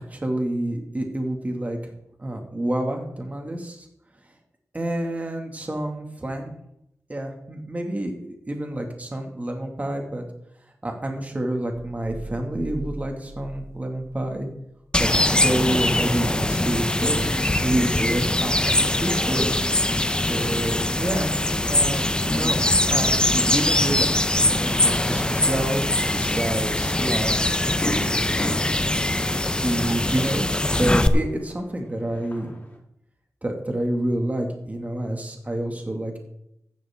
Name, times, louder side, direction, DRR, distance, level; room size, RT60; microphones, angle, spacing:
voice 1, 0.1-1.8 2.2-3.9 4.7-6.5 7.1-10.3 10.8-14.5 15.0-17.3 17.6-19.9 20.3-21.3 21.6-24.1 24.6-25.8 26.1-28.8 29.5-30.4 30.8-32.5 33.4-36.2, right 1 dB, 25° right, 2 dB, 2.0 m, -28 dB
sound 1, 11.7-14.3 14.6-14.8, right 2 dB, 65° right, 4.6 m, -39 dB
sound 2, 14.9-31.1, left 1 dB, 15° left, 0.7 m, -22 dB
Fireworks, 26.8-26.9 27.3-27.4 27.8-31.6 31.9-32.8, left 1 dB, 30° left, 3.6 m, -34 dB
15.0 x 11.5 x 3.6 m, 0.82 s
wide cardioid pair, 90°, 6 cm